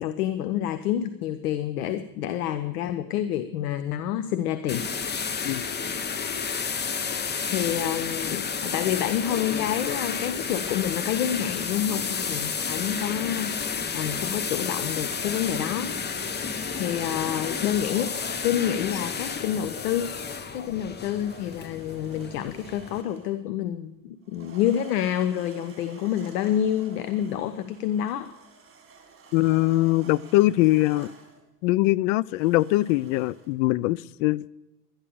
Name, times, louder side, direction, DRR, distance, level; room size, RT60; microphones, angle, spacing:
voice 1, 0.0-6.5 6.9-16.4 16.8-18.1 18.4-20.2 20.5-28.4, left 10 dB, 70° left, 0.9 m, -28 dB
sound 1, 4.7-23.0, left 5 dB, 20° left, 1.0 m, -31 dB
sound 2, 17.7-19.1 20.8-23.4 24.2-31.4 32.3-33.5, right 5 dB, 25° right, 4.3 m, -51 dB
voice 2, 29.3-31.1 31.6-34.5, left 18 dB, 55° left, 0.5 m, -22 dB
13.0 x 10.5 x 6.9 m
hypercardioid pair, 85°, 47 cm